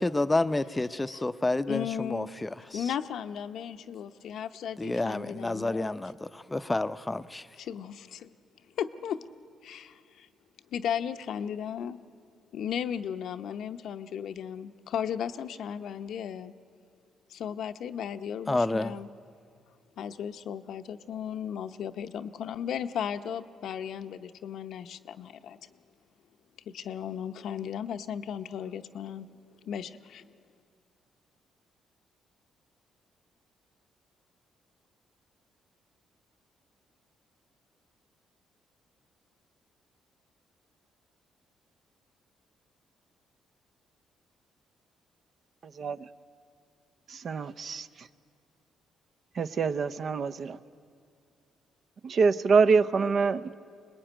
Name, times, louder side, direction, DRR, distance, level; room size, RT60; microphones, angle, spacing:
voice 1, 0.0-2.8 4.8-7.4 18.5-18.9, left 2 dB, 15° left, 13 dB, 0.6 m, -29 dB
voice 2, 1.7-2.3 2.7-6.0 7.6-8.3 8.8-9.2 9.6-10.3 10.7-12.1 12.5-16.5 17.3-19.1 20.0-25.7 26.7-29.4 29.6-30.3, left 8 dB, 70° left, 9 dB, 0.7 m, -35 dB
voice 3, 45.8-46.1 47.1-48.1 49.4-50.6 52.0-53.5, right 5 dB, 55° right, 13 dB, 0.6 m, -25 dB
24.0 x 20.0 x 9.0 m, 2.3 s
cardioid pair, 90°, 0 cm